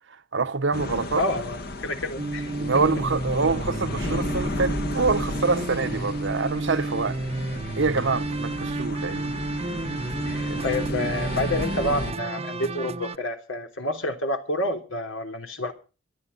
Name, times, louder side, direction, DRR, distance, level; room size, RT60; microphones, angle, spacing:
voice 1, 0.3-1.2 2.6-7.2 7.8-9.3 10.5-10.6, right 4 dB, 65° right, 1.0 m, -25 dB
sound 1, 0.7-12.1, left 2 dB, 55° left, 1.5 m, -34 dB
voice 2, 1.2-2.5 10.2-15.7, left 1 dB, 85° left, 3.3 m, -29 dB
sound 2, 2.2-13.2, right 2 dB, 30° right, 0.8 m, -31 dB
25.5 x 11.5 x 4.0 m
head